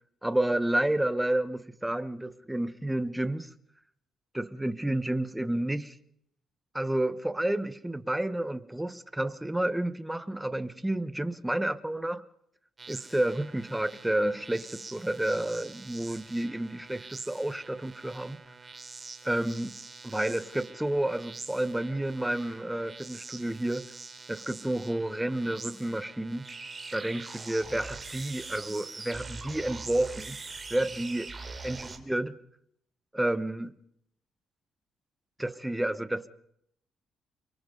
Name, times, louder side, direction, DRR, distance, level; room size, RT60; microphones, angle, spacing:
voice 1, 0.2-3.5 4.3-6.0 6.7-12.2 12.9-18.4 19.2-19.7 20.0-23.9 24.3-26.4 26.9-30.4 30.7-31.2 31.6-32.4 33.1-33.7 35.4-36.3, right 1 dB, 10° right, 1.1 m, -30 dB
sound 1, 12.8-32.0, right 4 dB, 30° right, 3.1 m, -44 dB
29.0 x 23.5 x 3.9 m
cardioid pair, 90°, 0 cm